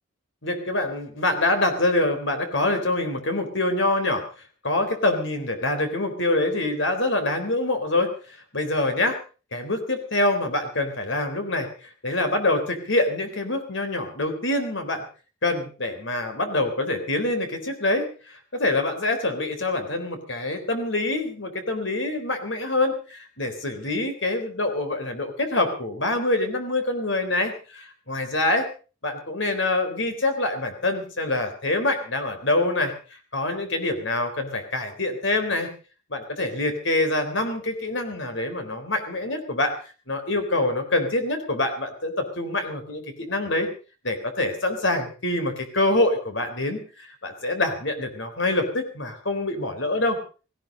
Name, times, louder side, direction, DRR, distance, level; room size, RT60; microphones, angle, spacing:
voice 1, 0.4-4.2 4.6-8.1 8.5-9.2 9.5-15.0 15.4-28.7 29.0-35.7 36.1-39.8 40.1-43.7 44.0-50.2, left 2 dB, 60° left, 6 dB, 3.8 m, -25 dB
17.5 x 16.0 x 5.2 m, 0.37 s
head